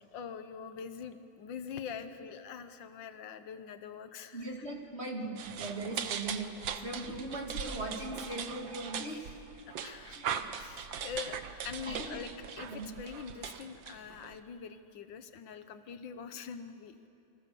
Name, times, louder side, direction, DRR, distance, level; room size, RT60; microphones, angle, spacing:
voice 1, 0.1-4.7 9.7-16.9, left 7 dB, 80° left, 9 dB, 1.8 m, -44 dB
voice 2, 4.3-6.5 6.8-9.3 10.0-10.5 11.9-12.2 12.7-12.9, right 2 dB, 35° right, 0 dB, 2.8 m, -39 dB
sound 1, 5.4-14.4, right 8 dB, 85° right, 1.8 m, -40 dB
30.0 x 25.0 x 7.0 m, 2.7 s
omnidirectional pair, 2.0 m